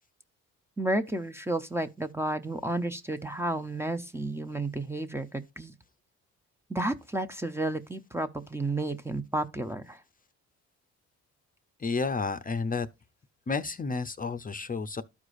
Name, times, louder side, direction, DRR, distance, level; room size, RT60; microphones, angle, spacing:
voice 1, 0.8-5.7 6.7-10.0, right 2 dB, 10° right, 0.7 m, -32 dB
voice 2, 11.8-12.9 13.5-15.0, left 4 dB, 30° left, 0.6 m, -31 dB
13.0 x 4.8 x 2.5 m
cardioid pair, 90°, 30 cm